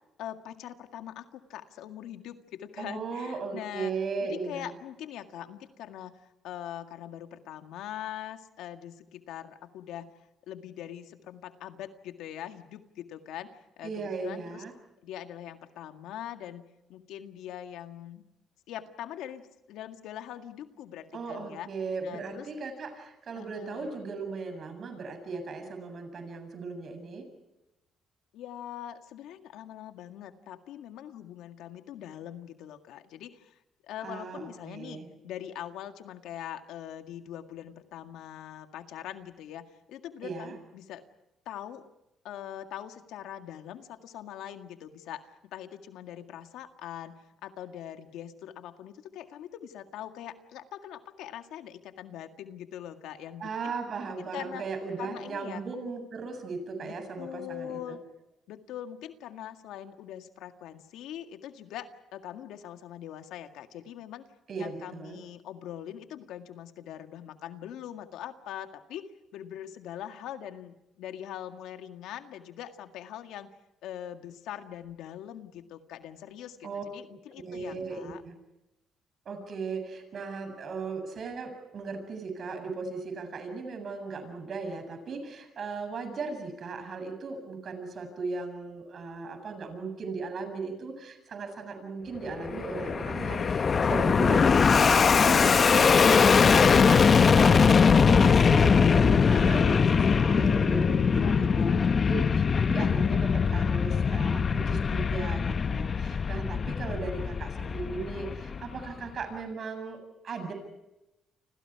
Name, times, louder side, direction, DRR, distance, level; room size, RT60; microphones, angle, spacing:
voice 1, 0.2-3.9 4.2-10.1 10.5-14.6 15.0-16.6 16.9-18.2 18.7-21.7 22.0-22.5 23.3-23.9 28.3-41.0 41.5-41.8 42.2-53.5 54.2-54.6 55.0-55.6 56.8-58.0 58.5-64.2 64.5-73.5 73.8-78.2 100.9-101.9, left 11 dB, 85° left, 7 dB, 1.9 m, -42 dB
voice 2, 2.8-4.7 13.8-14.7 21.1-27.2 34.0-35.1 40.2-40.6 53.4-58.0 64.5-65.2 76.6-76.8 77.4-78.3 79.3-94.5 94.8-97.7 98.0-110.5, right 4 dB, 55° right, 7 dB, 7.6 m, -37 dB
Fixed-wing aircraft airplane, 92.3-108.9, left 6 dB, 40° left, 0.9 m, -22 dB
29.5 x 26.0 x 4.8 m, 0.93 s
cardioid pair, 90°, 0 cm